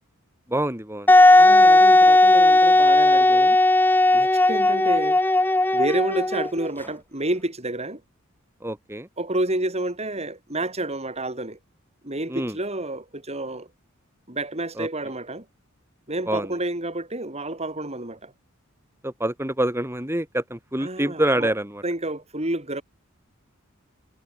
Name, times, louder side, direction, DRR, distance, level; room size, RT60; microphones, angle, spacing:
voice 1, 0.5-1.1 8.6-9.1 12.3-12.5 14.8-14.9 16.3-16.5 19.0-21.8, right 1 dB, 10° right, 4.4 m, -26 dB
Wind instrument woodwind instrument, 1.1-6.7, left 2 dB, 10° left, 1.3 m, -16 dB
voice 2, 1.4-3.6 4.1-5.2 5.7-8.0 9.2-11.6 12.0-13.7 14.3-15.5 16.1-18.3 20.8-21.5 21.8-22.8, right 1 dB, 30° right, 6.0 m, -29 dB
head